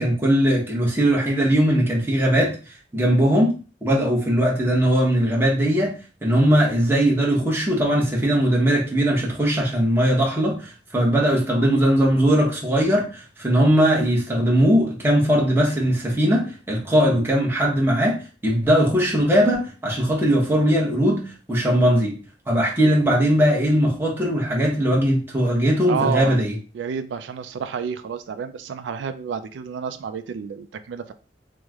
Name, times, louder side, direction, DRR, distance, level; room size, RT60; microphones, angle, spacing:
voice 1, 0.0-2.6 2.9-3.5 3.8-5.9 6.2-22.2 22.5-26.5, equal, 15° right, 0.9 m, -20 dB
voice 2, 25.9-26.4 26.7-31.1, right 6 dB, 85° right, 0.3 m, -30 dB
3.1 x 2.1 x 3.5 m
head